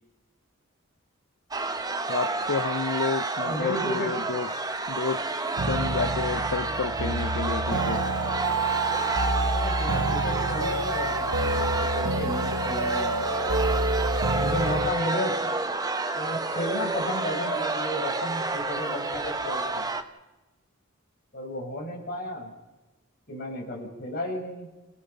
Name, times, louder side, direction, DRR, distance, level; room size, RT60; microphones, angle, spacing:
sound 1, 1.5-20.0, right 3 dB, 15° right, 0.8 m, -29 dB
voice 1, 2.1-4.5 4.9-5.2 5.6-8.0, left 4 dB, 60° left, 11 dB, 0.6 m, -30 dB
voice 2, 3.4-4.1 9.5-13.5 14.3-15.3 16.1-19.9 21.3-22.5 23.3-24.7, equal, 40° left, -1 dB, 5.6 m, -33 dB
sound 2, 5.6-14.9, right 2 dB, 85° right, 1.0 m, -28 dB
30.0 x 17.0 x 5.5 m, 1.1 s
head